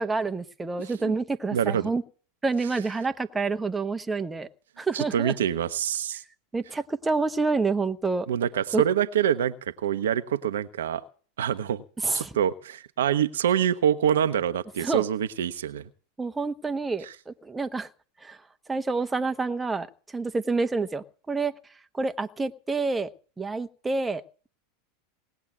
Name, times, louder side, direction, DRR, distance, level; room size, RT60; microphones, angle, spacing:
voice 1, 0.0-2.0 2.4-4.5 4.8-5.3 6.5-8.3 8.7-8.8 12.0-12.4 14.8-15.0 16.2-17.9 18.2-18.4 18.7-19.9 20.1-21.5 21.9-23.1 23.4-24.5, right 3 dB, 10° right, 1.0 m, -28 dB
voice 2, 0.8-1.1 1.5-1.8 4.9-6.2 8.3-11.0 11.4-11.8 12.1-15.9 17.0-17.1, right 9 dB, 65° right, 0.9 m, -26 dB
19.0 x 8.0 x 7.6 m
figure-of-eight pair, 85°, 0 cm